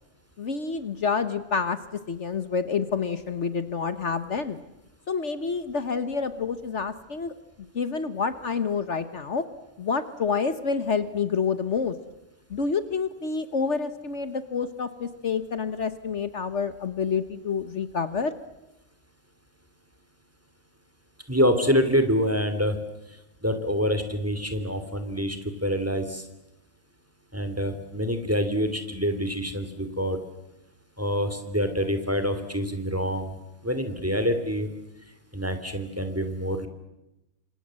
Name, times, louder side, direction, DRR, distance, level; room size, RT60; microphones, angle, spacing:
voice 1, 0.4-1.8 2.1-4.6 5.1-7.3 7.7-9.4 9.8-11.9 12.5-18.3, left 5 dB, 55° left, 11 dB, 1.5 m, -28 dB
voice 2, 21.3-22.7 23.4-25.4 25.6-26.2 27.3-30.2 31.0-33.3 33.6-34.7 35.3-36.7, equal, 10° right, 8 dB, 2.7 m, -26 dB
29.0 x 26.0 x 7.6 m, 0.93 s
omnidirectional pair, 1.4 m